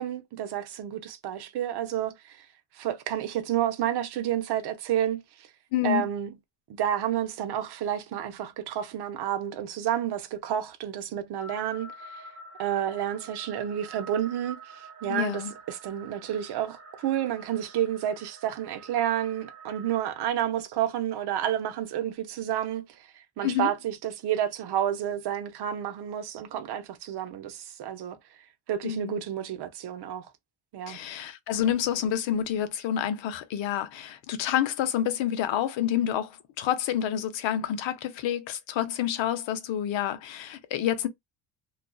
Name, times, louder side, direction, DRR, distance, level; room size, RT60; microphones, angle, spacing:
voice 1, 0.0-2.5 2.7-5.5 5.8-6.3 6.8-12.2 12.6-28.2 28.7-30.3 30.7-31.0, right 10 dB, 60° right, 0.7 m, -30 dB
voice 2, 5.7-6.0 15.1-15.5 23.4-23.7 28.8-29.2 30.9-41.1, left 10 dB, 75° left, 0.7 m, -28 dB
sound 1, 11.4-20.3, right 3 dB, 35° right, 0.9 m, -47 dB
2.4 x 2.3 x 2.2 m
cardioid pair, 145°, 45 cm